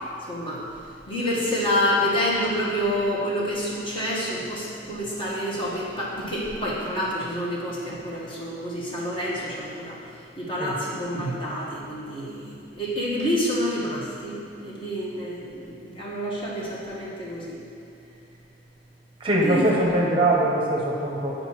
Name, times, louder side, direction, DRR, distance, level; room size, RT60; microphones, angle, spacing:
voice 1, 0.3-0.6 1.1-10.0 10.4-17.6 19.4-19.8, equal, 30° left, -7 dB, 1.3 m, -28 dB
voice 2, 19.2-21.3, right 1 dB, 30° right, -2 dB, 0.8 m, -22 dB
9.1 x 5.2 x 3.0 m, 2.7 s
head